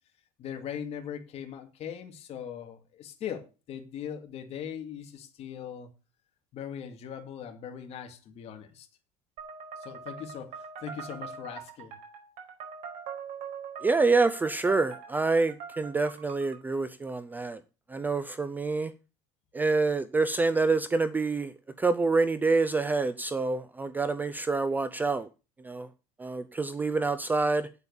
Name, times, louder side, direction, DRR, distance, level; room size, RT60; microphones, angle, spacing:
voice 1, 0.4-5.9 6.5-8.9 9.8-12.0, left 8 dB, 40° left, 2.2 m, -40 dB
sound 1, 9.4-16.6, right 6 dB, 50° right, 4.6 m, -43 dB
voice 2, 13.8-17.6 17.9-18.9 19.5-21.5 21.8-25.3 25.6-25.9 26.2-27.7, right 3 dB, 10° right, 0.5 m, -27 dB
8.8 x 8.2 x 7.0 m
cardioid pair, 165°, 16 cm